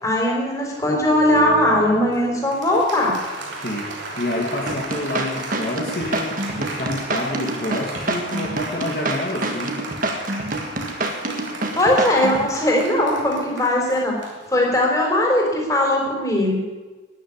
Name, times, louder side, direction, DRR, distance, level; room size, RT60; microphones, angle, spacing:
voice 1, 0.0-3.1 11.7-14.1 14.5-16.6, left 1 dB, 15° left, -1 dB, 3.8 m, -19 dB
Applause, 0.9-15.0, right 2 dB, 80° right, 3.2 m, -34 dB
voice 2, 3.6-9.8, left 1 dB, 50° left, -1 dB, 2.0 m, -28 dB
sound 1, 4.7-12.5, right 2 dB, 45° right, 1.7 m, -26 dB
12.0 x 10.5 x 9.5 m, 1.3 s
head